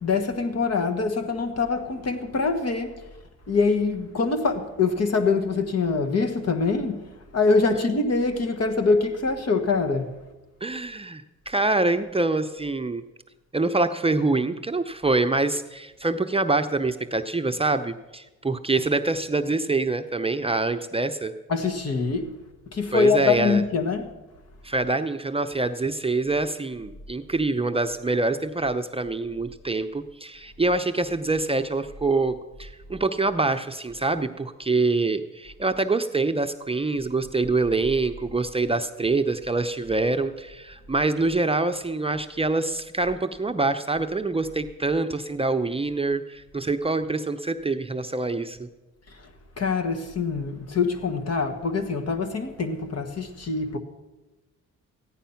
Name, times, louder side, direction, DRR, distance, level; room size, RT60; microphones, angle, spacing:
voice 1, 0.0-2.9 3.5-7.1 7.3-10.1 21.5-22.3 22.7-24.1 49.6-53.8, left 4 dB, 55° left, 1.5 m, -24 dB
voice 2, 10.6-13.0 13.5-21.3 22.9-23.6 24.6-48.7, right 3 dB, 20° right, 0.6 m, -25 dB
14.5 x 10.5 x 5.7 m
cardioid pair, 70°, 31 cm